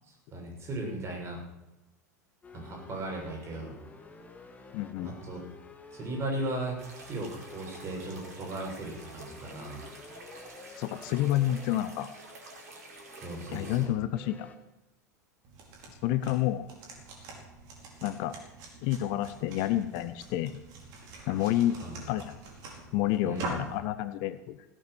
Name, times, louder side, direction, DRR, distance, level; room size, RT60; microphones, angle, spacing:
voice 1, 0.3-1.4 2.5-3.8 5.0-5.4 5.9-9.9 13.2-14.0 21.8-22.0 23.2-23.6, right 1 dB, 30° right, 0 dB, 6.7 m, -37 dB
sound 1, 2.4-14.6, left 3 dB, 15° left, 2.1 m, -51 dB
voice 2, 4.7-5.1 10.8-12.1 13.5-14.5 16.0-16.7 18.0-18.3 18.8-20.6 21.3-21.8 22.1-22.4 22.9-24.6, left 13 dB, 45° left, 13 dB, 0.9 m, -29 dB
sound 2, 6.8-13.8, right 2 dB, 65° right, 4.7 m, -49 dB
sound 3, 15.4-23.8, right 2 dB, 45° right, 5.0 m, -45 dB
17.5 x 9.3 x 8.0 m, 0.97 s
figure-of-eight pair, 85°, 9 cm